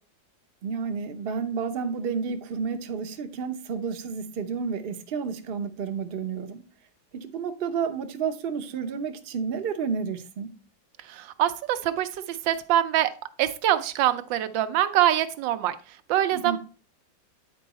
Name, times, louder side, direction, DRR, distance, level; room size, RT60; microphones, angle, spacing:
voice 1, 0.6-6.6 7.1-10.5 16.3-16.6, right 6 dB, 50° right, 0.7 m, -31 dB
voice 2, 11.0-13.1 13.4-15.7 16.1-16.6, right 12 dB, 85° right, 1.4 m, -24 dB
9.1 x 4.6 x 4.1 m
omnidirectional pair, 2.0 m